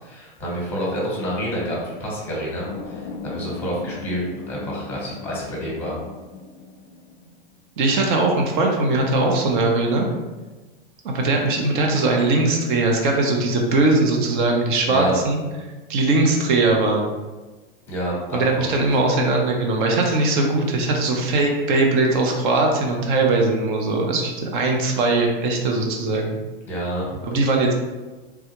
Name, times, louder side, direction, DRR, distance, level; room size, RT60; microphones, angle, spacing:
voice 1, 0.0-4.2 4.5-5.9 14.8-15.2 17.9-18.8 26.7-27.2, equal, 5° left, -4 dB, 1.0 m, -28 dB
sound 1, 2.7-7.7, left 3 dB, 45° left, 0.5 m, -37 dB
voice 2, 7.8-10.1 11.0-15.4 15.9-17.1 18.3-26.4 27.2-27.7, right 2 dB, 55° right, 1 dB, 0.8 m, -20 dB
3.4 x 2.3 x 2.9 m, 1.2 s
hypercardioid pair, 140°, 30 cm